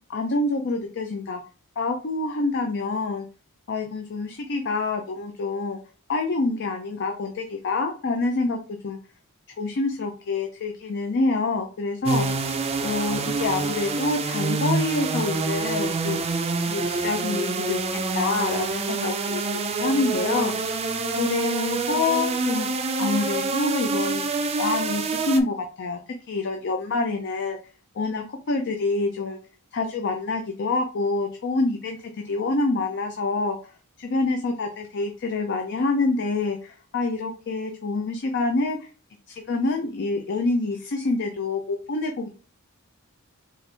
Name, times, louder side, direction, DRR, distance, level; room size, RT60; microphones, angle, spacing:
voice 1, 0.1-1.4 1.8-3.2 3.7-5.8 6.1-8.6 8.8-9.0 9.6-12.4 12.8-16.2 16.6-19.4 19.8-20.5 21.2-22.7 23.0-24.2 24.6-26.0 26.3-27.6 27.9-29.4 29.7-33.6 34.0-38.8 39.3-42.3, left 3 dB, 55° left, 4 dB, 0.5 m, -26 dB
sound 1, 12.1-25.4, right 4 dB, 30° right, 0.4 m, -27 dB
4.4 x 2.5 x 3.3 m, 0.36 s
head